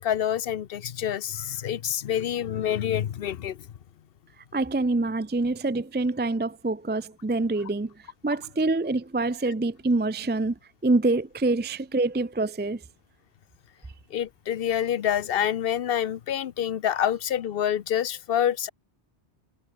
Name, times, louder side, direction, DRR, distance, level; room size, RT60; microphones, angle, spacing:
voice 1, 0.0-3.7 14.1-18.7, left 10 dB, 60° left, 0.9 m, -27 dB
voice 2, 4.5-7.9 8.2-12.8, right 2 dB, 20° right, 0.3 m, -26 dB
omnidirectional pair, 1.1 m